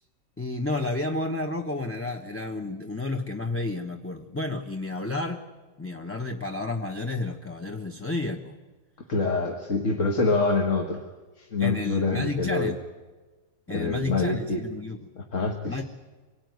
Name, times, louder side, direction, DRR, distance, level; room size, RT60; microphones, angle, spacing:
voice 1, 0.4-5.5 5.8-8.6 11.6-12.8 13.7-15.1 15.7-15.8, left 2 dB, 10° left, 4 dB, 0.8 m, -31 dB
voice 2, 9.1-11.0 11.4-12.7 13.7-14.6 15.2-15.8, left 3 dB, 50° left, 2 dB, 1.9 m, -26 dB
25.5 x 18.0 x 9.4 m, 1.3 s
omnidirectional pair, 1.7 m